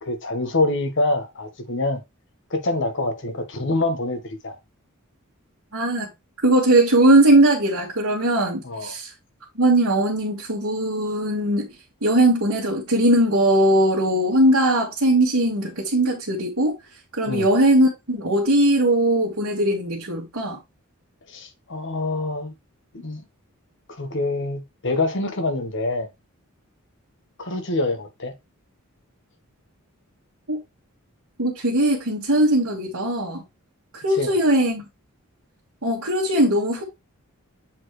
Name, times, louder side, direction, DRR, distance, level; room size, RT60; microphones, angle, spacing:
voice 1, 0.0-2.0 2.5-4.6 8.6-8.9 17.3-17.5 21.3-22.5 22.9-23.2 24.0-26.1 27.4-28.3 34.1-34.3, left 2 dB, 55° left, 1.3 m, -25 dB
voice 2, 5.7-6.1 6.4-9.1 9.6-11.7 12.0-16.7 17.2-20.6 30.5-30.6 31.4-33.4 34.0-34.8 35.8-36.8, right 1 dB, 70° right, 1.9 m, -19 dB
7.5 x 4.2 x 3.3 m
head